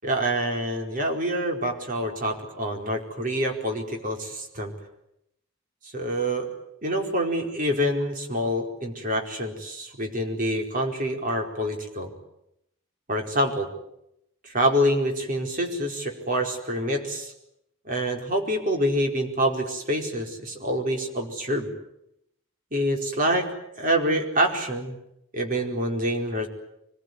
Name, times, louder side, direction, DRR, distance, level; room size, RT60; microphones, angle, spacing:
voice 1, 0.0-4.7 5.9-6.5 6.8-12.1 13.1-13.7 14.5-17.3 17.9-21.7 22.7-23.5 23.8-25.0 25.3-26.5, equal, 40° right, 2 dB, 4.7 m, -26 dB
25.0 x 22.0 x 9.7 m, 0.81 s
head